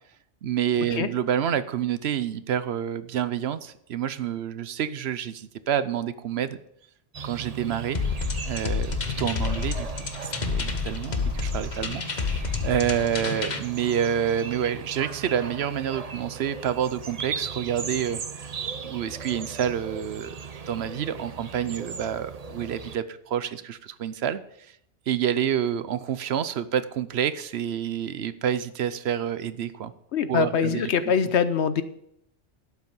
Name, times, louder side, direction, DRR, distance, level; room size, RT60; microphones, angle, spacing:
voice 1, 0.4-6.6 7.2-8.0 8.5-18.5 18.8-20.3 20.7-24.8 25.1-29.9 30.3-31.1, right 9 dB, 65° right, 14 dB, 0.9 m, -28 dB
sound 1, 7.1-23.0, right 6 dB, 40° right, 0.7 m, -38 dB
sound 2, 7.9-13.6, left 5 dB, 40° left, 1.1 m, -29 dB
voice 2, 30.1-31.8, left 7 dB, 70° left, 12 dB, 1.1 m, -23 dB
12.0 x 8.3 x 5.4 m, 0.74 s
omnidirectional pair, 1.2 m